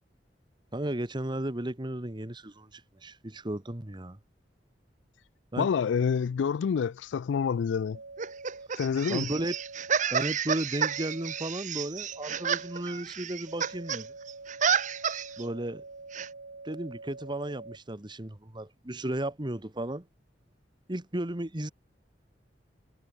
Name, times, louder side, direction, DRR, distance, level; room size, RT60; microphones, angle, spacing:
voice 1, 0.7-4.2 5.5-5.7 9.1-9.6 10.1-14.1 15.4-15.8 16.6-20.1 20.9-21.7, right 1 dB, 25° right, 1.4 m, -34 dB
voice 2, 5.6-8.0 8.8-9.3, left 6 dB, 80° left, 0.3 m, -27 dB
sound 1, 7.9-8.7 9.3-10.0 10.8-11.5 12.1-12.8 13.5-17.8, right 3 dB, 75° right, 1.7 m, -46 dB
sound 2, 8.2-14.0 14.3-15.4 16.1-16.3, right 7 dB, 45° right, 1.0 m, -30 dB
head